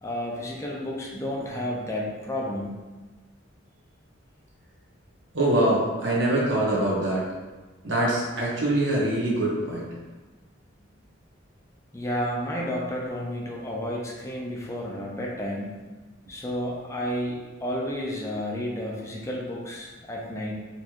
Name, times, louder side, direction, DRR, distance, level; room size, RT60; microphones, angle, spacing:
voice 1, 0.0-2.7 11.9-15.8 16.3-20.5, equal, 15° left, -3 dB, 0.5 m, -31 dB
voice 2, 5.3-7.2 7.8-9.9, right 1 dB, 65° right, -5 dB, 1.2 m, -24 dB
4.2 x 3.0 x 3.0 m, 1.2 s
head